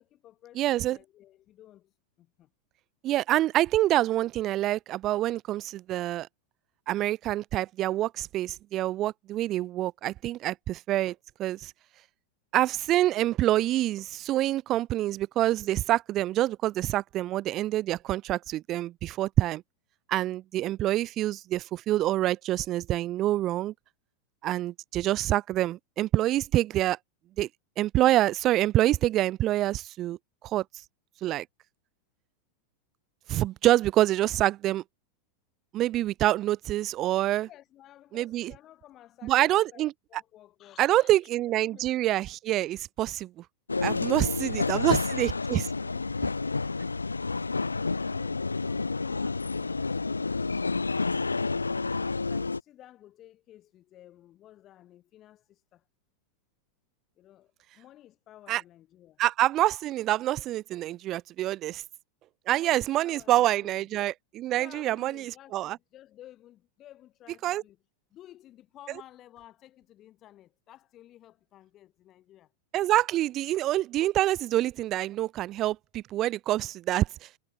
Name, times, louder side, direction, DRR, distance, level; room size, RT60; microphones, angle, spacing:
voice 1, 0.0-2.5 37.4-42.1 44.0-46.9 47.7-50.3 52.0-55.9 57.2-59.2 62.5-63.9 64.5-67.8 68.1-72.5, left 13 dB, 30° left, 1.8 m, -54 dB
voice 2, 0.6-1.0 3.0-6.3 6.9-11.1 11.4-11.7 12.5-19.6 20.1-23.7 24.4-27.0 27.4-27.5 27.8-30.2 30.4-30.6 31.2-31.4 33.3-34.8 35.7-37.5 38.1-38.5 39.2-39.9 40.8-43.3 43.8-45.6 58.5-58.6 59.2-61.8 62.5-65.8 67.4-67.6 72.7-77.3, right 14 dB, 35° right, 0.5 m, -26 dB
sound 1, 43.7-52.6, left 3 dB, 80° left, 0.7 m, -29 dB
figure-of-eight pair, 90°, 0 cm